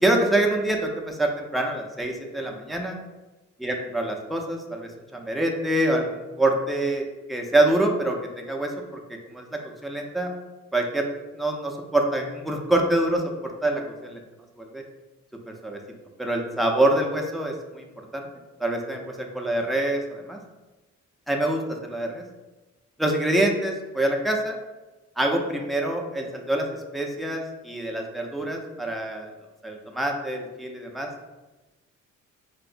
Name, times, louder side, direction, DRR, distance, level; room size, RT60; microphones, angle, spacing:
voice 1, 0.0-3.0 3.6-9.0 9.3-9.5 9.8-10.3 10.7-11.1 11.4-14.2 14.6-14.8 15.6-15.8 16.2-17.8 18.1-18.3 18.6-20.4 21.3-22.2 23.0-24.6 25.2-26.7 26.9-29.3 29.6-31.1, right 1 dB, ahead, 0 dB, 0.4 m, -25 dB
4.6 x 2.0 x 2.5 m, 1.1 s
cardioid pair, 90°, 30 cm